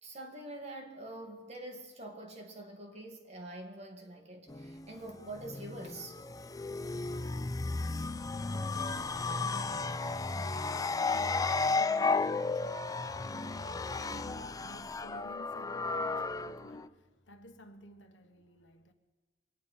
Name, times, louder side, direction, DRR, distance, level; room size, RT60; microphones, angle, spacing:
voice 1, 0.0-6.5, right 1 dB, 35° right, 2.2 m, -45 dB
sound 1, 4.5-16.9, left 3 dB, 20° left, 0.4 m, -34 dB
voice 2, 8.3-18.9, equal, 75° left, 1.4 m, -54 dB
24.5 x 9.9 x 5.6 m
head